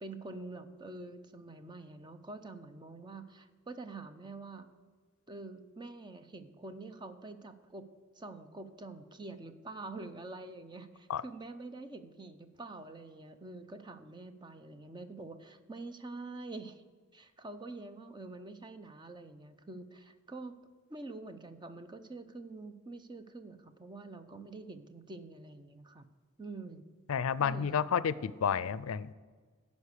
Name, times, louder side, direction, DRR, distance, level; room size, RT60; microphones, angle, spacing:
voice 1, 0.0-4.7 5.3-7.9 8.1-16.8 17.1-20.6 20.9-26.1 26.4-26.8 27.4-27.7, right 2 dB, 20° right, 9 dB, 0.6 m, -46 dB
voice 2, 27.1-29.1, left 7 dB, 90° left, 18 dB, 0.4 m, -31 dB
14.5 x 5.3 x 6.7 m, 1.5 s
head